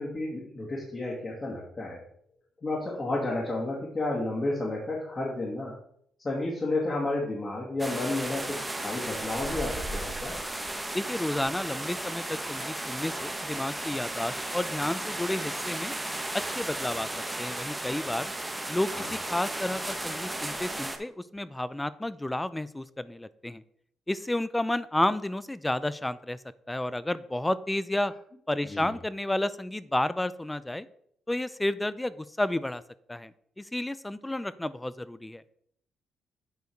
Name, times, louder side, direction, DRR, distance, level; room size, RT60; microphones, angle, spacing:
voice 1, 0.0-2.0 2.6-5.7 6.2-10.4 18.9-19.2 28.7-28.9, left 2 dB, 30° left, -3 dB, 2.2 m, -31 dB
sound 1, 7.8-21.0, right 1 dB, 10° right, 1.0 m, -34 dB
voice 2, 10.9-15.9 16.3-17.1 17.4-18.3 18.7-23.6 24.1-26.4 26.7-28.1 28.5-30.9 31.3-32.8 33.1-33.3 33.6-35.4, left 1 dB, 10° left, 17 dB, 0.4 m, -31 dB
8.2 x 4.5 x 4.6 m, 0.68 s
cardioid pair, 90°, 0 cm